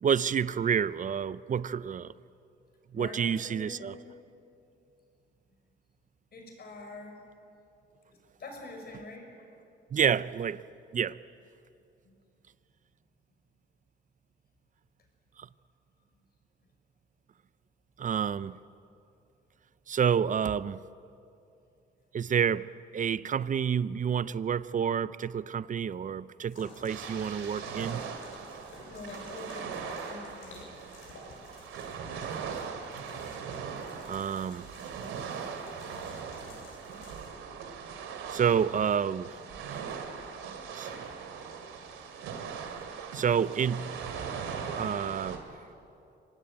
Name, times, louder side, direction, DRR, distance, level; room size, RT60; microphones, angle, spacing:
voice 1, 0.0-2.1 2.9-4.0 9.9-10.6 10.9-11.2 15.4-15.5 18.0-18.6 19.9-20.8 22.1-22.7 22.9-28.0 34.1-34.7 38.3-39.4 39.7-39.8 40.7-40.9 43.1-43.9 44.8-45.4, right 7 dB, 40° right, 0.6 m, -29 dB
voice 2, 2.9-4.1 6.3-7.2 8.1-9.3 12.0-12.1 28.9-30.7 38.2-38.3 40.9-41.0 41.7-41.8, left 2 dB, 50° left, 6.1 m, -45 dB
sound 1, 26.5-37.3, left 3 dB, 85° left, 7.2 m, -52 dB
sound 2, 26.9-45.4, right 6 dB, 90° right, 2.7 m, -40 dB
25.5 x 19.0 x 8.7 m
cardioid pair, 90°, 20 cm